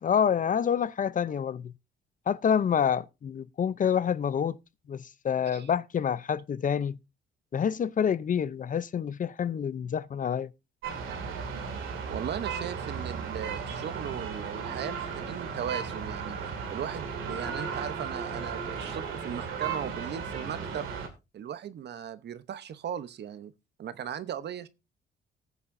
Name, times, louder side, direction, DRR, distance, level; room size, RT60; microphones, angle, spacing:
voice 1, 0.0-1.7 2.3-4.6 4.9-7.0 7.5-10.5, left 8 dB, 40° left, 0.6 m, -27 dB
sound 1, 10.8-21.1, right 6 dB, 85° right, 2.3 m, -35 dB
voice 2, 12.1-16.4 16.7-20.9 21.3-23.5 23.8-24.7, right 9 dB, 60° right, 0.8 m, -37 dB
19.0 x 7.0 x 2.6 m
cardioid pair, 90°, 20 cm